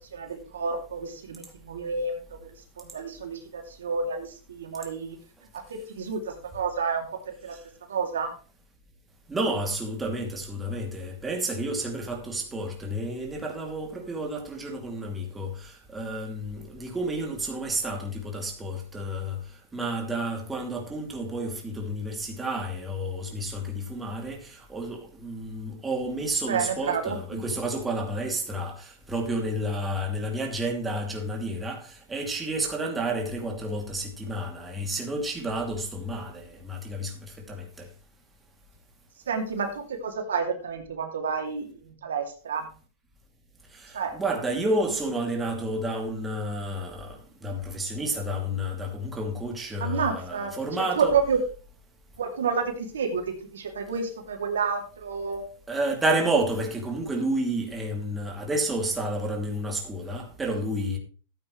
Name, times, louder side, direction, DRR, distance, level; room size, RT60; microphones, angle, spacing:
voice 1, 0.1-2.2 2.8-5.2 5.7-7.6 7.9-8.3 26.5-27.4 39.3-42.7 43.9-44.2 49.8-50.5 50.8-51.4 52.2-55.4, right 5 dB, 90° right, 2.6 m, -30 dB
voice 2, 9.3-19.4 19.7-37.9 43.7-51.2 55.7-61.0, right 1 dB, 10° right, 2.6 m, -30 dB
13.5 x 8.7 x 3.2 m
hypercardioid pair, 125°, 0 cm